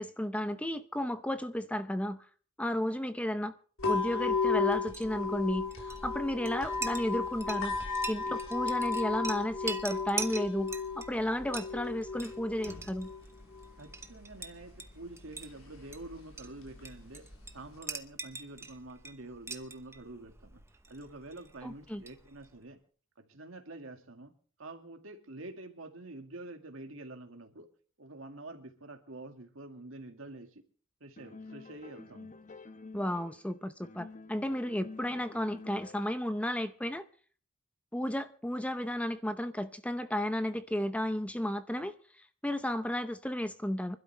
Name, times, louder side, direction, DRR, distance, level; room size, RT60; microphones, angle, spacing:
voice 1, 0.0-2.3 2.6-3.6 3.9-7.8 8.1-13.1 21.6-22.0 32.9-37.0 37.9-42.0 42.4-44.0, left 1 dB, 5° left, 0.7 m, -33 dB
sound 1, 3.8-17.8, left 4 dB, 85° left, 3.9 m, -35 dB
Chink clink, 4.8-22.6, right 3 dB, 15° right, 0.9 m, -45 dB
voice 2, 13.8-17.2 17.5-22.8 23.2-24.3 24.6-27.7 28.0-30.6 31.0-32.3, right 2 dB, 75° right, 2.1 m, -47 dB
sound 2, 31.2-33.5 33.8-36.3, left 3 dB, 40° left, 1.0 m, -49 dB
25.0 x 12.0 x 3.3 m
head